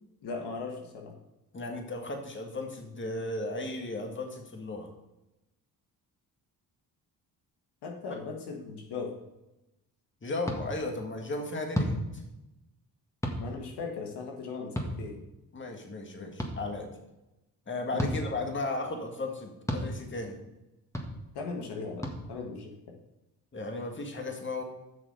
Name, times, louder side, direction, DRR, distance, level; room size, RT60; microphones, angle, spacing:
voice 1, 0.2-1.1 7.8-9.2 13.4-15.2 17.9-18.1 21.3-22.0 22.3-22.7, left 4 dB, 75° left, 1 dB, 1.6 m, -38 dB
voice 2, 1.5-4.9 8.1-8.2 10.2-12.2 15.5-16.9 17.7-20.4 23.5-24.6, left 2 dB, 30° left, 3 dB, 1.8 m, -35 dB
sound 1, 10.4-10.6 11.7-12.0 13.2-13.4 14.8-14.9 16.4-16.5 18.0-18.2 19.7-19.8 20.9-21.1 22.0-22.2, equal, 5° left, 1.7 m, -30 dB
7.5 x 6.3 x 5.4 m, 0.96 s
supercardioid pair, 60°, 40 cm